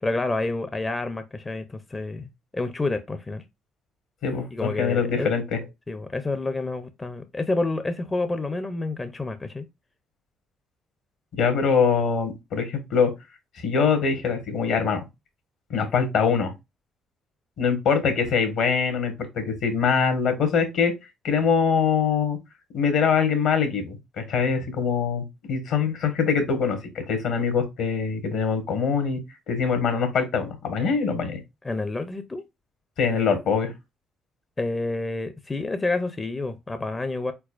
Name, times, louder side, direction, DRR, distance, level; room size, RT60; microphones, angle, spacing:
voice 1, 0.0-3.4 4.5-5.3 5.9-9.6 31.6-32.4 34.6-37.3, left 2 dB, 25° left, 0.6 m, -29 dB
voice 2, 4.2-5.6 11.3-13.1 13.6-15.0 15.7-16.5 17.6-20.9 21.2-22.4 22.7-26.8 27.1-29.2 29.5-31.4 33.0-33.7, left 6 dB, 65° left, 1.7 m, -23 dB
4.6 x 4.1 x 2.5 m
hypercardioid pair, 50°, 0 cm